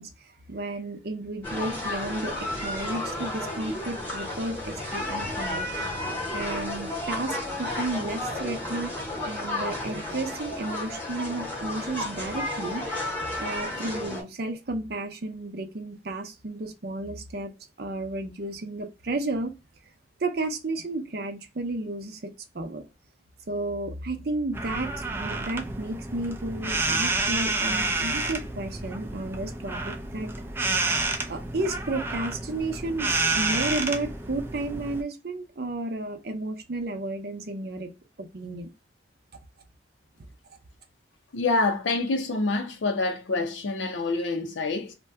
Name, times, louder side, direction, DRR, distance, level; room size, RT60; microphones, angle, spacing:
voice 1, 0.0-5.6 6.3-8.9 9.3-12.8 13.4-17.5 17.8-19.5 20.2-22.8 23.5-24.9 25.2-30.3 31.3-33.1 33.4-37.9 38.2-38.7, right 2 dB, 55° right, 0.6 m, -32 dB
sound 1, 1.4-14.2, left 1 dB, 10° left, 0.9 m, -32 dB
sound 2, 24.5-35.0, right 3 dB, 10° right, 0.3 m, -29 dB
voice 2, 41.3-44.9, left 3 dB, 90° left, 0.5 m, -26 dB
2.7 x 2.2 x 3.3 m
head